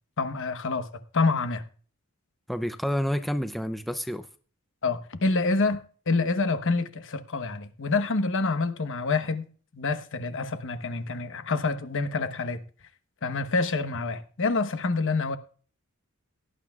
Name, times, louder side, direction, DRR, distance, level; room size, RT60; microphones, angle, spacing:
voice 1, 0.2-1.6 4.8-9.5 9.7-12.6 13.2-15.4, left 3 dB, 60° left, 1.0 m, -27 dB
voice 2, 2.5-4.3, equal, ahead, 0.5 m, -29 dB
17.5 x 11.0 x 2.4 m
head